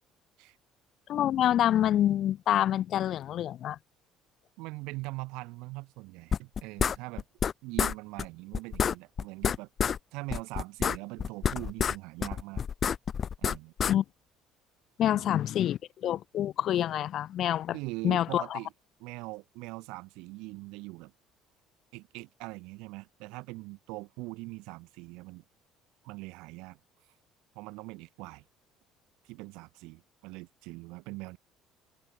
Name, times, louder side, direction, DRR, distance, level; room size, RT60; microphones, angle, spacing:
voice 1, 1.1-3.8 13.9-14.0 15.0-17.8 18.0-18.6, left 11 dB, 50° left, 1.2 m, -27 dB
voice 2, 4.6-7.2 7.6-9.7 10.1-12.6 13.4-13.7 15.1-15.3 17.7-18.7 19.0-21.1 21.9-25.4 26.0-26.8 27.5-28.4 29.2-31.4, right 24 dB, 90° right, 6.2 m, -42 dB
sound 1, 6.3-7.5 7.8-8.2 8.5-10.0 10.3-12.0 12.2-13.9, left 7 dB, 35° left, 0.6 m, -28 dB
cardioid pair, 140°, 0 cm